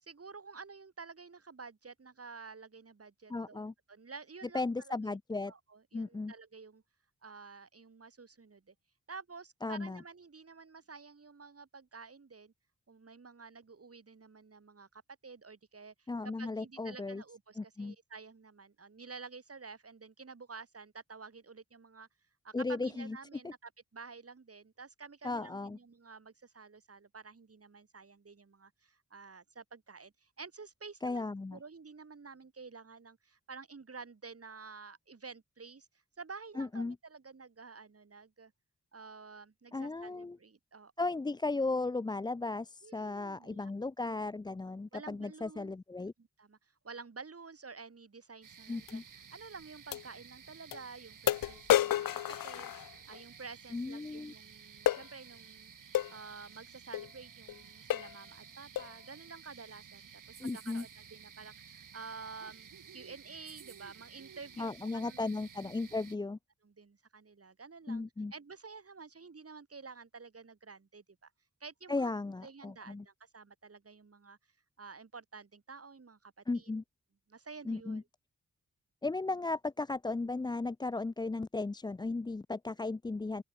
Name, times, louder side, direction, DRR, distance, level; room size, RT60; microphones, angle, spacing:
voice 1, 0.0-3.6 3.9-5.2 5.5-6.8 7.2-8.7 9.1-12.5 12.9-16.1 16.4-22.1 22.4-31.2 31.5-35.9 36.2-38.5 38.9-41.1 42.8-43.7 44.7-45.7 46.0-55.7 56.1-65.3 65.8-65.9 66.6-68.0 68.3-71.3 71.6-72.1 72.4-74.4 74.8-76.7 77.3-78.0, right 4 dB, 45° right, 1.9 m, -50 dB
voice 2, 3.3-3.7 4.5-5.5 5.9-6.3 9.6-10.0 16.1-17.2 17.6-18.0 22.5-23.2 23.4-23.5 25.2-25.8 31.0-31.6 36.6-37.0 39.7-40.4 41.0-46.1 48.7-49.0 53.7-54.3 60.4-60.8 64.6-66.4 67.9-68.3 71.9-73.0 76.5-76.8 77.7-78.0 79.0-83.4, left 3 dB, 15° left, 0.4 m, -36 dB
sound 1, 48.4-66.2, right 7 dB, 70° right, 1.5 m, -54 dB
sound 2, 48.9-49.0 49.9-50.0 50.7-50.8 51.3-53.2 54.9-55.1 55.9-56.1 56.9-57.1 57.5-57.6 57.9-58.2 58.8-59.0, left 12 dB, 85° left, 0.5 m, -30 dB
open air
cardioid pair, 40°, 33 cm